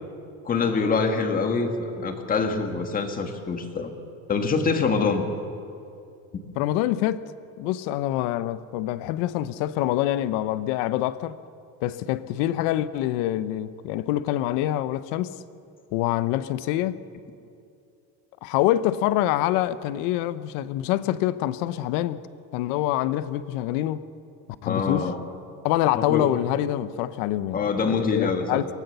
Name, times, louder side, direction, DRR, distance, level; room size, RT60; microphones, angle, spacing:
voice 1, 0.4-3.9 4.3-5.3 6.3-6.4 24.7-25.2 25.9-26.4 27.5-28.7, left 4 dB, 25° left, 1.9 m, -25 dB
voice 2, 6.6-7.2 7.6-11.4 11.8-15.4 15.9-17.0 18.4-22.2 22.5-24.0 24.6-25.1 25.6-28.7, left 13 dB, 80° left, 0.9 m, -25 dB
23.5 x 17.5 x 6.9 m
cardioid pair, 155°, 32 cm